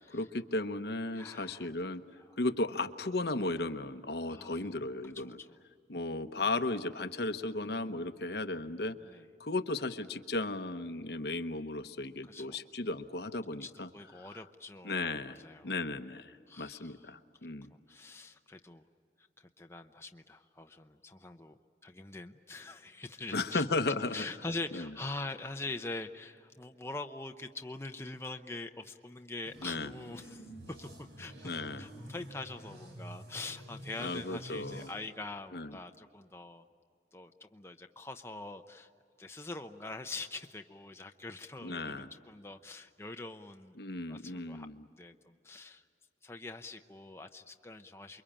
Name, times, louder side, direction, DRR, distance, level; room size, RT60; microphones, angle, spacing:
voice 1, 0.1-2.0 2.4-5.4 5.9-8.9 9.4-13.9 14.2-14.3 14.8-15.4 15.6-17.7 23.3-24.2 24.7-24.9 29.6-29.9 31.4-31.8 34.0-34.9 35.5-35.7 41.6-42.1 43.8-44.8, left 2 dB, 65° left, 9 dB, 1.0 m, -35 dB
voice 2, 1.1-1.7 2.2-2.3 4.3-4.7 5.1-5.6 9.0-9.2 12.2-12.6 13.6-15.7 16.5-17.1 17.7-18.8 19.4-23.6 24.1-31.5 31.8-36.6 37.1-38.9 39.2-43.7 44.1-44.7 45.0-45.8 46.2-48.2, left 2 dB, 15° left, 5 dB, 0.7 m, -44 dB
sound 1, 29.5-34.9, right 1 dB, 90° right, 5.5 m, -49 dB
28.5 x 23.0 x 8.8 m, 2.2 s
head